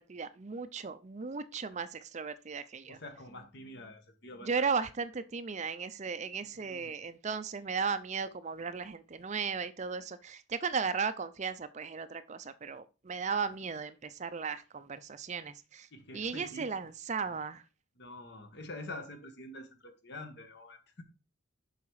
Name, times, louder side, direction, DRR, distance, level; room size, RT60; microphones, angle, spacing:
voice 1, 0.0-3.0 4.4-15.9 16.1-17.6, right 5 dB, 35° right, 0.5 m, -36 dB
voice 2, 2.8-4.7 6.4-6.9 15.9-16.7 17.3-17.4 18.0-21.0, left 2 dB, 55° left, 1.4 m, -46 dB
7.1 x 5.7 x 4.8 m
head